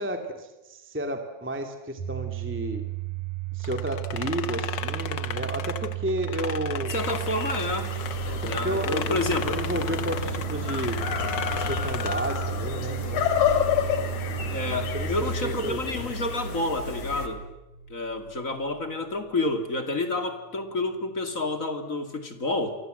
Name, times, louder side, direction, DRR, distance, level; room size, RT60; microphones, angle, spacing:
voice 1, 0.0-2.8 3.5-6.9 8.1-11.0 11.5-13.3 14.9-16.1, equal, 5° right, 5 dB, 1.9 m, -32 dB
Domestic sounds home sounds, 2.0-18.9, right 14 dB, 85° right, 5.7 m, -34 dB
sound 1, 3.6-8.1 8.4-12.5, left 8 dB, 55° left, 1.4 m, -35 dB
sound 2, 6.9-17.3, left 8 dB, 80° left, 3.6 m, -30 dB
voice 2, 6.9-7.9 8.4-9.6 14.5-17.4 17.9-22.8, left 2 dB, 30° left, 7 dB, 2.6 m, -29 dB
30.0 x 24.0 x 7.9 m, 0.98 s
omnidirectional pair, 3.3 m